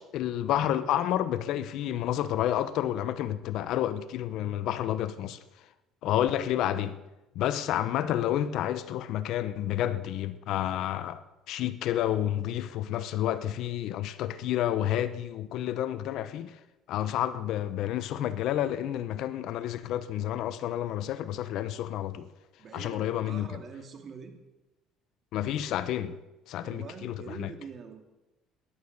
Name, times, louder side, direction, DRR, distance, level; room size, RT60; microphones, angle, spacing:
voice 1, 0.0-5.4 6.0-6.9 7.4-16.6 16.9-22.3 22.7-23.5 25.3-26.2 26.5-27.5, left 12 dB, 65° left, 0.9 m, -30 dB
voice 2, 6.0-6.4 6.7-7.0 22.6-24.3 26.6-28.0, right 5 dB, 40° right, 2.5 m, -44 dB
16.0 x 11.5 x 6.7 m
cardioid pair, 105°, 0 cm